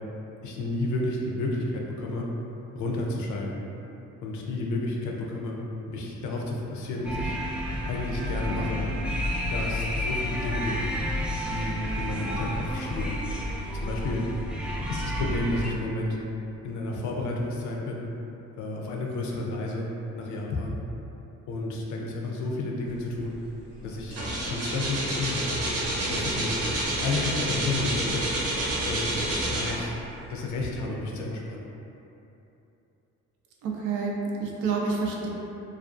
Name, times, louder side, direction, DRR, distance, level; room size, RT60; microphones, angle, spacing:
voice 1, 0.4-2.3 2.7-3.7 4.2-5.6 5.9-7.4 7.9-8.8 9.5-10.7 11.5-13.2 13.7-14.3 14.9-16.2 16.6-18.1 18.6-19.9 20.2-20.8 21.5-23.4 23.8-24.2 24.5-25.6 26.1-26.6 27.0-28.3 28.9-30.0 30.3-31.6, left 2 dB, 75° left, -1 dB, 0.5 m, -31 dB
sound 1, 7.0-15.7, equal, 5° right, 0.3 m, -30 dB
sound 2, 23.3-23.5 23.8-30.1 30.6-30.7, right 1 dB, 55° right, 0.8 m, -29 dB
voice 2, 33.6-35.3, right 4 dB, 85° right, -2 dB, 0.5 m, -28 dB
2.4 x 2.3 x 2.4 m, 2.9 s
cardioid pair, 90°, 30 cm